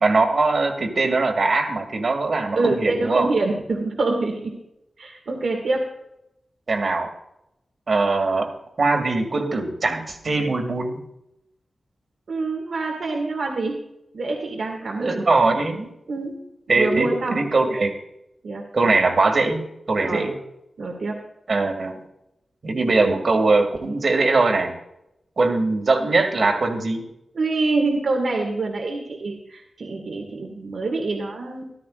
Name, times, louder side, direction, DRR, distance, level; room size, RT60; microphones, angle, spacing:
voice 1, 0.0-3.3 6.7-7.1 7.9-8.5 8.8-11.0 15.0-15.9 16.7-17.9 18.7-20.4 21.5-22.0 22.6-24.7 25.4-27.0, right 3 dB, 60° right, 4 dB, 2.2 m, -21 dB
voice 2, 2.5-4.5 5.0-5.9 12.3-13.8 14.1-15.2 16.1-16.4 16.7-17.4 18.4-18.6 20.0-20.3 20.8-21.2 27.3-31.7, right 3 dB, 75° right, 1 dB, 2.0 m, -25 dB
14.5 x 13.0 x 2.5 m, 0.83 s
wide cardioid pair, 75°, 0 cm